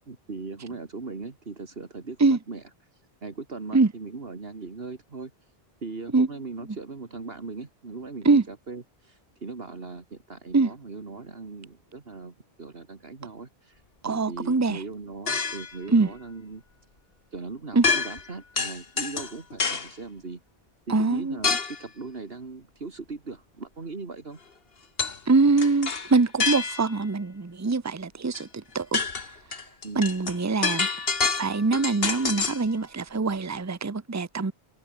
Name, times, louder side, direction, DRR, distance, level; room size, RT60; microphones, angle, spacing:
voice 1, 0.1-2.6 2.9-5.3 5.8-16.6 17.3-20.4 20.9-24.4 29.8-30.0, right 3 dB, 65° right, 2.5 m, -39 dB
voice 2, 14.0-14.8 15.9-16.1 17.7-17.8 20.9-21.4 25.3-29.0 29.9-30.9 31.4-34.5, right 3 dB, 20° right, 0.8 m, -23 dB
sound 1, 15.3-15.8 17.8-18.3 18.6-19.9 21.4-21.8 25.0-25.2 25.6-27.0 28.3-28.4 28.8-32.7, left 5 dB, 65° left, 1.9 m, -27 dB
omnidirectional pair, 1.1 m